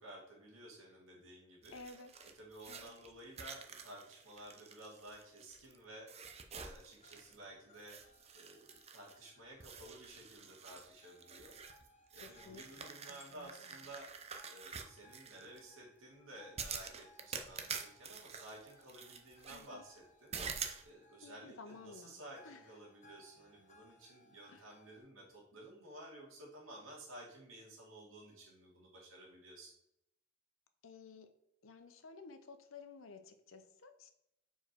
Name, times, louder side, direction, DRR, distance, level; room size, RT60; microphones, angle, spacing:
voice 1, 0.0-1.8 2.4-8.0 8.3-11.5 12.1-14.1 14.5-29.7, right 1 dB, 85° right, -3 dB, 2.3 m, -54 dB
sound 1, 1.6-5.8 6.1-7.4 7.8-9.3 9.6-15.6 16.6-19.7 20.3-20.8, right 6 dB, 30° right, 0.6 m, -47 dB
voice 2, 1.7-2.1 2.7-2.9 12.2-13.8 19.5-19.9 21.2-22.6 24.5-24.7 30.8-31.3 31.6-34.1, left 4 dB, 90° left, 9 dB, 0.7 m, -54 dB
sound 2, 7.0-25.0, left 1 dB, 35° left, 1.1 m, -67 dB
5.0 x 4.6 x 4.6 m, 0.79 s
head